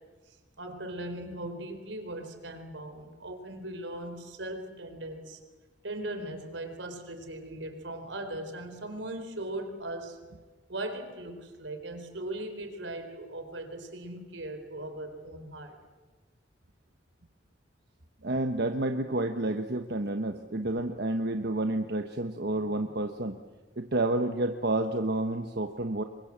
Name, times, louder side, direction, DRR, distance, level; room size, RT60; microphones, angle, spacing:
voice 1, 0.3-5.4 5.8-10.2 10.7-15.7, right 1 dB, 85° right, 7 dB, 4.3 m, -39 dB
voice 2, 18.2-23.4 23.8-26.0, right 2 dB, 60° right, 6 dB, 1.2 m, -30 dB
28.0 x 23.5 x 7.5 m, 1.3 s
head